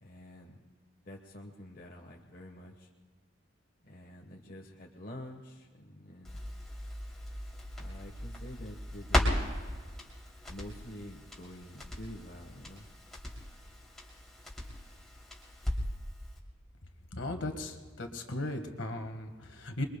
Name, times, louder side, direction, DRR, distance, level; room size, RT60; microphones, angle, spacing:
voice 1, 0.0-0.6 1.0-2.9 3.8-6.4 7.7-9.5 10.5-12.9, left 1 dB, 45° left, 0 dB, 1.2 m, -47 dB
Crackle, 6.3-16.1 16.4-16.5, left 1 dB, ahead, 2.8 m, -37 dB
voice 2, 17.1-19.9, left 1 dB, 65° left, 5 dB, 1.6 m, -37 dB
27.5 x 22.5 x 2.2 m, 1.4 s
head